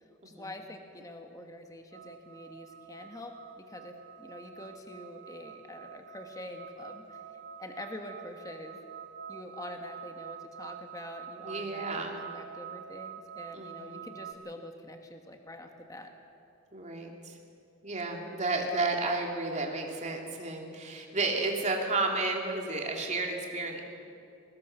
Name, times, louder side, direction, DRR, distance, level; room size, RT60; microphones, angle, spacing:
voice 1, 0.2-7.2 7.6-8.8 9.3-11.8 12.2-16.1, left 1 dB, 15° left, 4 dB, 1.3 m, -45 dB
sound 1, 1.9-14.3, right 8 dB, 55° right, 1.2 m, -46 dB
voice 2, 11.4-12.2 13.5-14.0 16.7-17.4 17.8-23.8, right 3 dB, 30° right, 0 dB, 2.8 m, -32 dB
22.0 x 19.0 x 6.7 m, 2.6 s
head